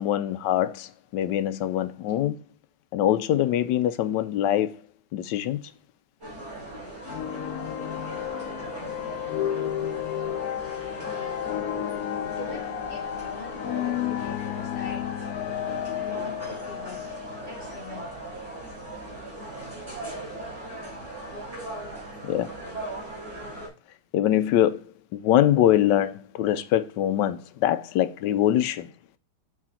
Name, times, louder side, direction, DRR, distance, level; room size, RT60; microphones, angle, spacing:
voice 1, 0.0-2.4 2.9-4.8 5.1-5.6 13.6-13.7 22.2-22.5 24.1-24.9 25.1-28.9, left 11 dB, 85° left, 1.3 m, -23 dB
sound 1, 6.2-23.7, right 2 dB, 40° right, 4.7 m, -39 dB
sound 2, 7.1-18.3, left 12 dB, 70° left, 0.9 m, -32 dB
voice 2, 12.4-15.0 16.0-17.0 17.4-18.0, left 3 dB, 35° left, 1.4 m, -43 dB
7.3 x 4.8 x 4.3 m
omnidirectional pair, 1.9 m